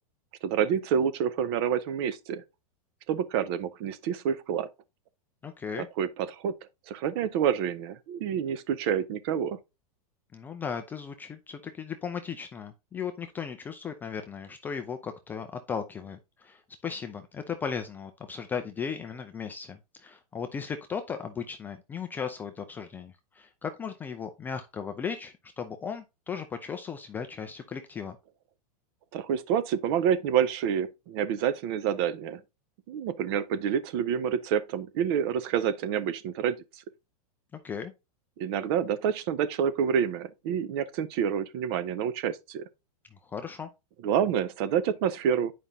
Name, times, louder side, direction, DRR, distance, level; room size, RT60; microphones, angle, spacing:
voice 1, 0.4-2.4 3.1-4.7 5.7-6.6 6.9-9.6 29.1-32.4 32.9-36.6 38.4-42.6 44.0-45.5, right 8 dB, 40° right, 0.7 m, -28 dB
voice 2, 5.4-5.9 10.3-28.2 37.6-37.9 43.2-43.7, left 6 dB, 10° left, 0.3 m, -36 dB
9.1 x 5.1 x 2.7 m
supercardioid pair, 160°, 20 cm